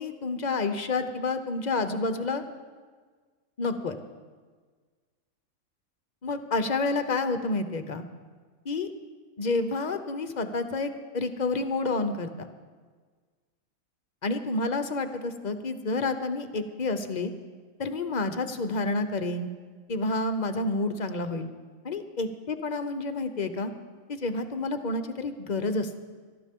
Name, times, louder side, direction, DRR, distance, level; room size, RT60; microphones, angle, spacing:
voice 1, 0.0-2.4 3.6-4.0 6.2-8.0 8.6-8.9 9.4-12.5 14.2-17.3 17.8-19.5 19.9-21.5 21.8-23.7 24.1-26.0, left 3 dB, 45° left, 9 dB, 0.7 m, -29 dB
18.0 x 13.0 x 3.6 m, 1.5 s
omnidirectional pair, 1.5 m